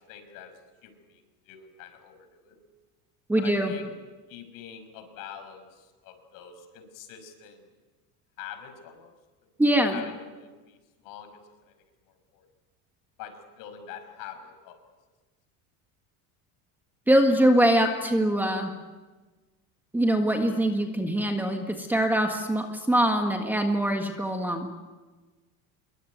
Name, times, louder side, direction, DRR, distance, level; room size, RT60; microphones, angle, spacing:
voice 1, 0.1-0.5 0.8-1.2 1.5-2.6 3.4-3.9 4.3-7.6 8.4-9.1 9.9-10.8 11.0-11.3 11.7-11.8 12.3-12.4 13.2-14.7, left 8 dB, 60° left, 8 dB, 5.7 m, -44 dB
voice 2, 3.3-3.7 9.6-10.0 17.1-18.7 19.9-24.7, right 1 dB, 5° right, 4 dB, 1.7 m, -23 dB
26.5 x 23.0 x 9.4 m, 1.3 s
cardioid pair, 170°, 38 cm